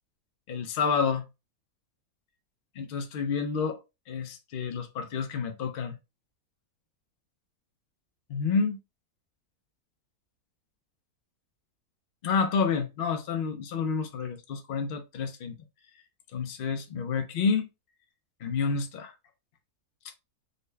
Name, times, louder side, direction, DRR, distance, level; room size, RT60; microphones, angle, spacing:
voice 1, 0.5-1.2 2.8-3.8 4.1-6.0 8.3-8.8 12.2-15.6 16.3-17.7 18.4-19.1, left 5 dB, 75° left, 0.5 m, -29 dB
4.0 x 2.1 x 3.2 m
omnidirectional pair, 1.6 m